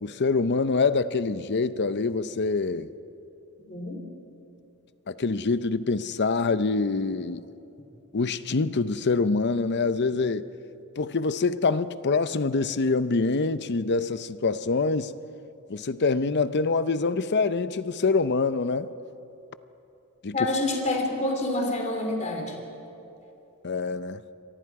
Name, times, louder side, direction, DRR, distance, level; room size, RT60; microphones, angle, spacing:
voice 1, 0.0-2.9 5.1-7.4 8.1-10.5 11.0-15.1 15.7-18.9 20.2-20.5 23.6-24.2, left 4 dB, 55° left, 0.7 m, -25 dB
voice 2, 3.7-4.0 20.3-22.5, left 2 dB, 35° left, 3.3 m, -27 dB
28.5 x 24.0 x 4.8 m
head